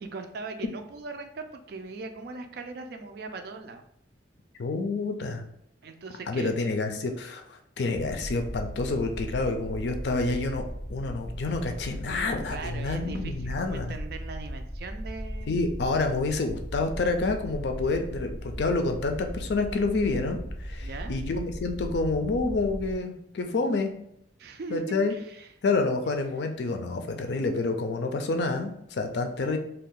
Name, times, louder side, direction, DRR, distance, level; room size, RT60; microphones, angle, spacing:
voice 1, 0.0-3.8 5.8-6.6 12.5-15.6 20.8-21.2 24.4-25.5, right 3 dB, 60° right, 6 dB, 0.4 m, -39 dB
voice 2, 4.6-5.4 6.3-10.6 10.9-13.9 15.5-23.9 24.7-25.1 25.6-29.6, left 3 dB, 65° left, 6 dB, 0.4 m, -28 dB
sound 1, 7.9-22.9, equal, 10° left, 0.5 m, -37 dB
2.7 x 2.3 x 3.6 m, 0.74 s
head